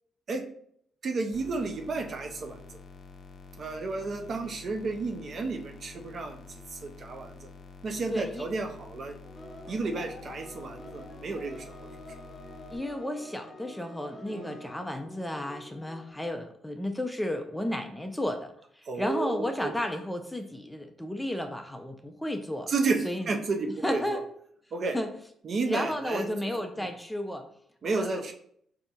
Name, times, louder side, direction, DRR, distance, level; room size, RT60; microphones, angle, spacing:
voice 1, 1.0-2.6 3.6-7.5 7.8-9.2 9.7-11.6 14.3-14.6 18.9-19.7 22.7-24.2 24.7-25.0 25.4-26.3 26.8-26.9 27.8-28.3, right 3 dB, 50° right, 4 dB, 0.6 m, -32 dB
sound 1, 1.3-12.8, left 3 dB, 55° left, 0.5 m, -49 dB
voice 2, 8.1-8.4 12.7-18.5 19.0-22.7 23.0-23.3 23.8-24.2 24.9-25.1 25.7-27.4 27.9-28.2, left 1 dB, 5° left, 6 dB, 0.4 m, -33 dB
sound 2, 9.2-16.1, left 1 dB, 30° left, 1.1 m, -47 dB
4.1 x 2.7 x 3.5 m, 0.66 s
cardioid pair, 90°, 0 cm